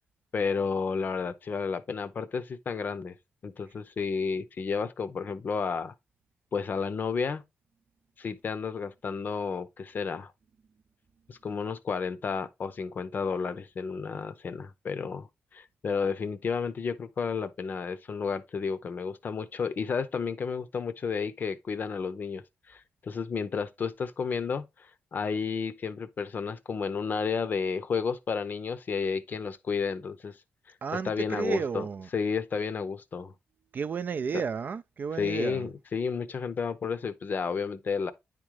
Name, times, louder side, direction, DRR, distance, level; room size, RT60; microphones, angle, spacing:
voice 1, 0.3-3.1 3.4-5.9 6.5-7.4 8.2-10.3 11.3-30.3 31.0-31.8 32.1-33.3 35.2-38.1, left 5 dB, 50° left, 0.6 m, -32 dB
voice 2, 30.8-32.1 33.7-35.7, right 6 dB, 50° right, 0.4 m, -32 dB
9.6 x 3.7 x 3.1 m
cardioid pair, 110°, 4 cm